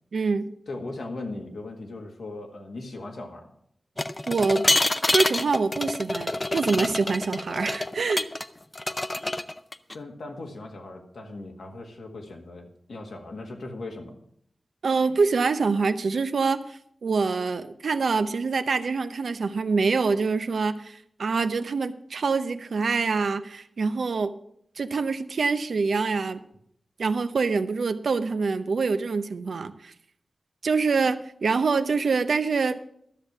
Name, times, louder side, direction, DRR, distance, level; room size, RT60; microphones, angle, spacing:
voice 1, 0.1-0.5 4.3-4.7 5.1-8.3 14.8-24.3 24.8-26.4 27.0-29.9 30.6-32.8, right 4 dB, 85° right, 11 dB, 0.6 m, -25 dB
voice 2, 0.7-3.5 9.9-14.2, left 2 dB, 85° left, 2 dB, 1.9 m, -38 dB
sound 1, 4.0-8.5 8.7-9.9, left 2 dB, 30° left, 0.6 m, -27 dB
13.0 x 6.5 x 7.1 m, 0.72 s
wide cardioid pair, 60°, 0 cm